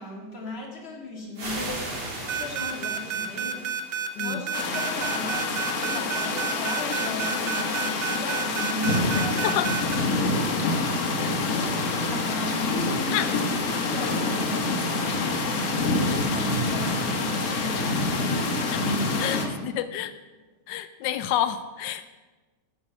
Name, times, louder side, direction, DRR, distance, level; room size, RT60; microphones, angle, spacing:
voice 1, 0.0-9.6 10.1-11.0 12.0-13.3 13.6-19.7, left 1 dB, 35° left, 0 dB, 2.3 m, -37 dB
sound 1, 1.3-5.0, right 1 dB, 70° right, 3.5 m, -37 dB
sound 2, 2.3-10.0, right 8 dB, 85° right, 1.6 m, -30 dB
sound 3, 4.5-19.5, left 3 dB, 60° left, 1.6 m, -26 dB
voice 2, 19.2-20.1 20.7-22.0, left 11 dB, 90° left, 12 dB, 1.3 m, -28 dB
8.6 x 8.4 x 7.6 m, 1.3 s
omnidirectional pair, 1.8 m